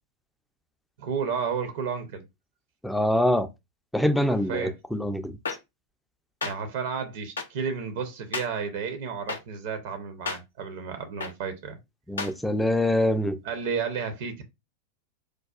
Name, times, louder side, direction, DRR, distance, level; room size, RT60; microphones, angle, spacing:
voice 1, 1.0-2.2 4.5-4.7 6.4-11.8 13.4-14.4, right 6 dB, 50° right, 0.6 m, -32 dB
voice 2, 2.8-3.5 3.9-5.4 12.1-13.4, left 1 dB, 5° left, 0.4 m, -24 dB
sound 1, 5.5-5.6 6.4-6.5 7.4-7.5 8.3-8.5 9.3-9.4 10.3-10.4 11.2-11.3 12.2-12.3, left 4 dB, 70° left, 0.5 m, -30 dB
4.6 x 2.3 x 2.3 m
figure-of-eight pair, 90°, 0 cm